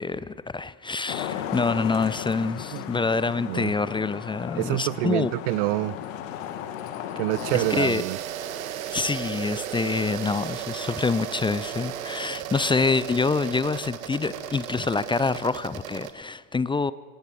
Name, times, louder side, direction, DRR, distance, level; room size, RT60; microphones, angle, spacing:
voice 1, 0.0-5.3 7.5-8.0 8.9-16.9, left 4 dB, 10° left, 17 dB, 0.6 m, -26 dB
Traffic noise roadway noise, 1.1-7.9, left 10 dB, 60° left, 2.0 m, -35 dB
voice 2, 4.6-6.0 7.2-8.2, right 22 dB, 50° right, 23 dB, 0.6 m, -26 dB
sound 1, 7.3-16.1, right 10 dB, 70° right, 1.6 m, -35 dB
26.0 x 18.0 x 7.8 m, 1.5 s
figure-of-eight pair, 70°, 43 cm